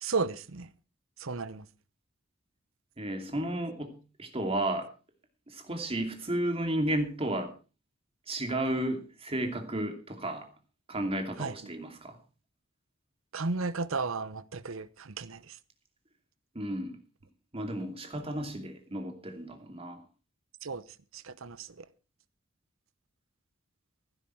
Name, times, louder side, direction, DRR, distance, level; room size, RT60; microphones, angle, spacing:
voice 1, 0.0-0.7 1.2-1.6 11.4-11.5 13.3-15.6 20.6-20.8 21.1-21.8, right 4 dB, 75° right, 0.9 m, -34 dB
voice 2, 3.0-3.9 4.2-4.9 5.5-7.5 8.3-10.5 10.9-12.2 16.5-17.0 17.5-20.0, right 1 dB, 30° right, 2.7 m, -33 dB
15.5 x 12.5 x 4.6 m
head